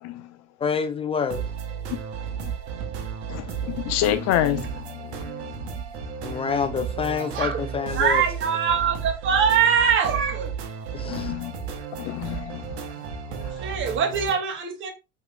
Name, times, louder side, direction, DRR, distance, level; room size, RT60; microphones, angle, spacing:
voice 1, 0.6-1.4 6.2-8.2 10.9-11.3, left 6 dB, 15° left, 0.3 m, -27 dB
sound 1, 1.3-14.4, right 7 dB, 65° right, 1.0 m, -33 dB
voice 2, 3.3-5.5 11.1-11.5 12.0-12.8 13.4-13.5, left 12 dB, 45° left, 0.8 m, -28 dB
voice 3, 7.0-7.7 7.9-10.5 13.6-14.9, right 7 dB, 35° right, 1.1 m, -23 dB
7.8 x 3.0 x 2.2 m
figure-of-eight pair, 65°, 36 cm